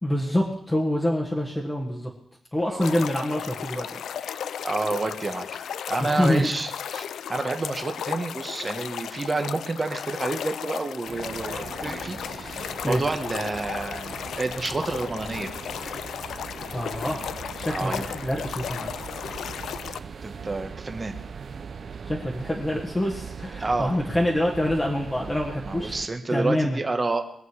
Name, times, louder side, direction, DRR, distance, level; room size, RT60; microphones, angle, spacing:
voice 1, 0.0-2.1 2.5-4.0 6.0-6.5 12.8-13.0 16.7-18.9 22.0-26.0 26.3-26.8, left 1 dB, 10° left, -3 dB, 1.5 m, -26 dB
sound 1, 2.8-20.0, left 8 dB, 70° left, 0.4 m, -35 dB
voice 2, 4.6-5.6 5.9-15.5 17.7-18.1 20.2-21.2 23.6-24.0 25.7-27.3, right 3 dB, 20° right, 6 dB, 1.3 m, -29 dB
sound 2, 11.1-26.1, right 6 dB, 40° right, 0.6 m, -40 dB
22.5 x 7.9 x 4.9 m, 0.71 s
wide cardioid pair, 165°, 0 cm